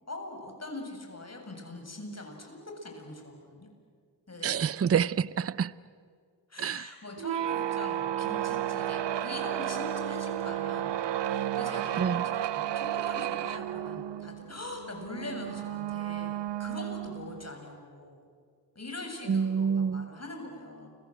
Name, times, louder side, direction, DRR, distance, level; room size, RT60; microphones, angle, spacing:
voice 1, 0.1-3.7 4.3-4.7 6.5-11.0 11.2-18.2 18.7-20.9, left 2 dB, 35° left, 3 dB, 7.5 m, -42 dB
voice 2, 4.4-5.7 6.6-6.9 12.0-12.2 19.3-20.1, right 7 dB, 35° right, 19 dB, 0.6 m, -27 dB
sound 1, 7.2-17.5, right 12 dB, 75° right, 0.8 m, -32 dB
29.5 x 24.0 x 7.9 m, 2.1 s
supercardioid pair, 45°, 43 cm